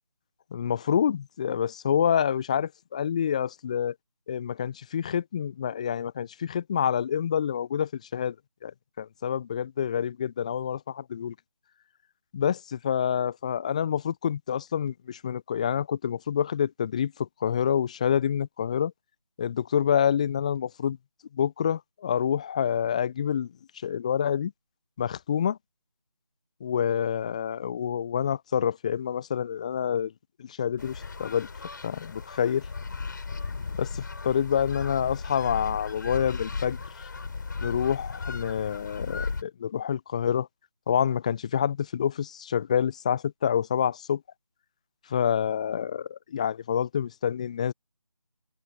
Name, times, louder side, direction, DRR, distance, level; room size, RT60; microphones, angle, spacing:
voice 1, 0.5-3.9 4.3-8.3 8.6-8.7 9.0-11.3 12.3-18.9 19.4-21.0 21.3-23.5 23.8-24.5 25.0-25.6 26.6-30.1 30.4-31.5 31.8-32.6 33.7-36.8 37.6-40.5 40.9-44.2 45.1-47.7, left 8 dB, 10° left, 1.0 m, -27 dB
sound 1, 30.8-39.4, left 4 dB, 35° left, 4.3 m, -36 dB
figure-of-eight pair, 160°, 18 cm